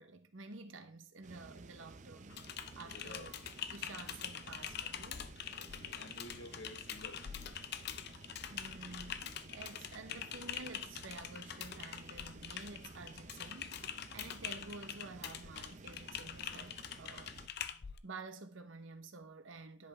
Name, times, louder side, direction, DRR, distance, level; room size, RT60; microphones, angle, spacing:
voice 1, 0.0-2.5 2.8-3.4 3.7-5.3 8.5-17.3 18.0-19.9, right 3 dB, 85° right, 1.1 m, -50 dB
sound 1, 1.2-17.5, right 3 dB, 40° right, 0.6 m, -54 dB
Typing, 2.3-18.0, left 9 dB, 55° left, 0.5 m, -45 dB
voice 2, 2.8-3.3 5.6-7.2, left 2 dB, 85° left, 1.4 m, -51 dB
10.5 x 5.5 x 3.5 m
head